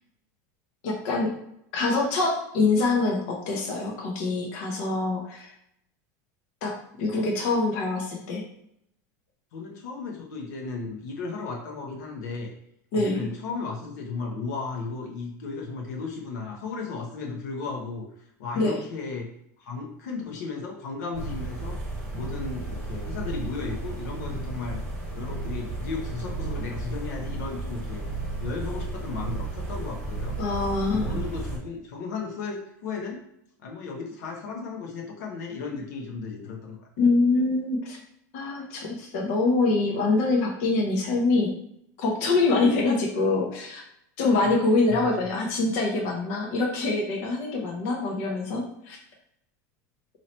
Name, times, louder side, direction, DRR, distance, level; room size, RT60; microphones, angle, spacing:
voice 1, 0.8-1.3 1.7-5.5 6.6-8.4 12.9-13.3 18.6-18.8 30.4-31.2 37.0-38.0 38.3-41.5 42.0-43.8 44.2-49.0, left 3 dB, 50° left, -1 dB, 0.8 m, -25 dB
voice 2, 9.5-12.5 12.9-18.1 18.4-19.3 19.6-21.8 22.1-24.8 25.1-28.0 28.4-30.4 30.9-33.2 33.6-36.8 44.4-44.6 44.9-45.1, left 4 dB, 85° left, 0 dB, 1.0 m, -35 dB
sound 1, 21.1-31.6, right 3 dB, 10° left, 1.2 m, -33 dB
3.0 x 2.8 x 4.1 m, 0.75 s
supercardioid pair, 170°, 9 cm